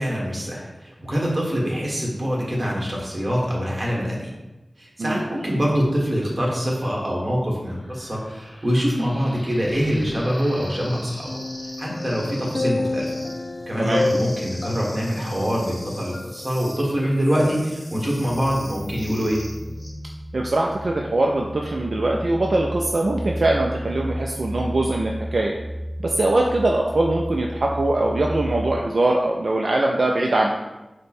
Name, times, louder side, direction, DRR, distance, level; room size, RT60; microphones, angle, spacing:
voice 1, 0.0-4.3 4.8-11.3 11.8-13.2 13.7-19.4, equal, 40° right, -3 dB, 1.4 m, -24 dB
sound 1, 7.7-19.9, equal, 20° left, 0.8 m, -42 dB
sound 2, 11.3-16.7 17.0-17.2, left 2 dB, 65° left, 0.3 m, -30 dB
sound 3, 18.3-28.8, equal, 15° right, 0.6 m, -33 dB
voice 2, 20.3-25.6 26.0-30.5, right 2 dB, 75° right, -1 dB, 0.3 m, -22 dB
4.9 x 2.1 x 4.3 m, 1.1 s
wide cardioid pair, 55°, 0 cm